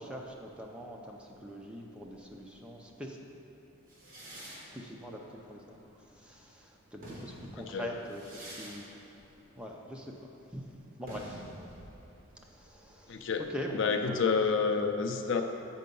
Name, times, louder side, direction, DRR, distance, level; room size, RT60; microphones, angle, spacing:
voice 1, 0.0-3.2 4.7-5.2 5.5-9.2 9.6-10.6 11.0-11.4 12.4-13.2 13.5-14.2 14.6-14.7, equal, 5° right, 0 dB, 0.5 m, -43 dB
sound 1, 3.9-6.4 6.8-14.3, equal, 40° right, 1.7 m, -50 dB
voice 2, 7.6-7.9 13.1-13.4 13.7-15.4, left 5 dB, 55° left, 5 dB, 0.5 m, -29 dB
7.6 x 5.4 x 5.3 m, 3.0 s
head